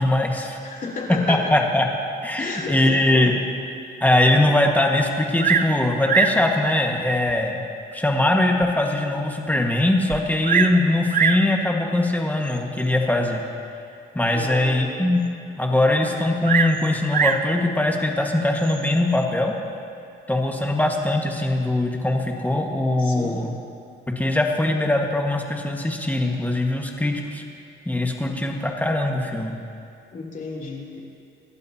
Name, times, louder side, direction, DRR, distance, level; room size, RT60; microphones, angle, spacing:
voice 1, 0.0-0.6 1.1-1.9 2.2-3.4 4.0-7.6 7.9-13.4 14.1-15.2 15.6-19.5 20.3-23.5 24.2-27.4 27.8-29.5, left 1 dB, 10° left, 1 dB, 1.7 m, -21 dB
voice 2, 0.6-1.4 2.4-3.0 14.3-14.9 23.0-23.5 30.1-31.0, left 3 dB, 40° left, -3 dB, 3.0 m, -32 dB
Bird vocalization bird call bird song, 5.4-5.8 6.1-6.4 7.3-7.4 8.0-8.1 8.6-8.7 8.9-9.0 10.1-10.8 11.1-11.5 12.5-12.8 16.4-17.5 18.6-19.0, right 7 dB, 45° right, 0.8 m, -22 dB
26.0 x 12.0 x 2.9 m, 2.5 s
cardioid pair, 90°, 20 cm